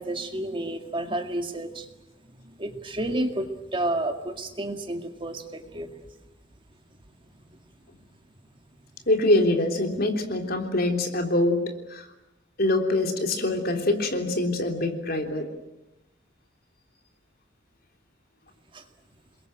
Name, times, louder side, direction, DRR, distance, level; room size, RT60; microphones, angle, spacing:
voice 1, 0.0-1.9 2.3-6.0 18.7-18.8, right 1 dB, 25° right, 6 dB, 2.1 m, -31 dB
voice 2, 9.1-11.6 11.9-12.1 12.6-15.5, left 1 dB, 55° left, 4 dB, 3.5 m, -24 dB
28.0 x 22.5 x 9.1 m, 0.95 s
head